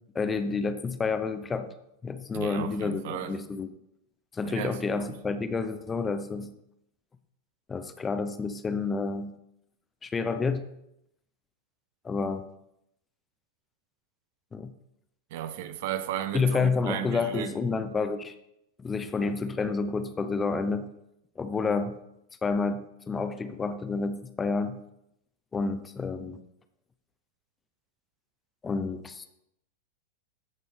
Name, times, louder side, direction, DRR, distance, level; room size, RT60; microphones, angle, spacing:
voice 1, 0.1-1.7 2.0-3.7 4.3-6.5 7.7-9.3 10.0-10.7 12.0-12.5 14.5-14.7 16.3-18.3 18.8-20.9 21.4-22.0 22.4-24.8 25.5-26.4 28.6-29.3, left 4 dB, 15° left, 0.6 m, -29 dB
voice 2, 2.3-3.3 4.4-5.2 15.3-17.5, right 11 dB, 50° right, 0.6 m, -35 dB
14.0 x 5.3 x 3.2 m
figure-of-eight pair, 90°, 0 cm